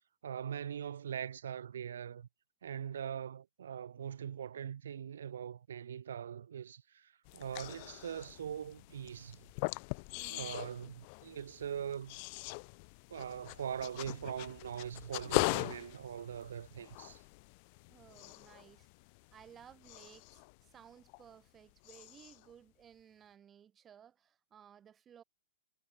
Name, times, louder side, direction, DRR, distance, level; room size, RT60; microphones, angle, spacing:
voice 1, 0.2-2.3 2.6-9.4 10.3-12.2 13.1-17.2, right 8 dB, 60° right, 2.3 m, -42 dB
sound 1, 7.3-21.6 21.8-22.5, left 32 dB, 25° left, 0.3 m, -41 dB
voice 2, 10.1-10.6 17.9-18.9 19.3-25.2, right 9 dB, 10° right, 3.2 m, -58 dB
hypercardioid pair, 180°, 0 cm